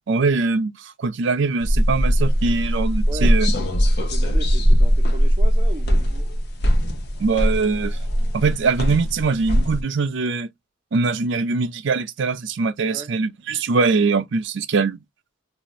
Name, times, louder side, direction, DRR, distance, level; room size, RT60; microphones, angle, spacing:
voice 1, 0.1-3.5 7.2-8.0 8.3-10.5 10.9-15.0, right 4 dB, 60° right, 0.4 m, -22 dB
sound 1, 1.6-9.8, equal, 50° left, 0.7 m, -20 dB
voice 2, 3.1-3.7 4.0-6.3 12.8-13.2, right 2 dB, 25° right, 0.7 m, -37 dB
2.7 x 2.4 x 3.0 m
head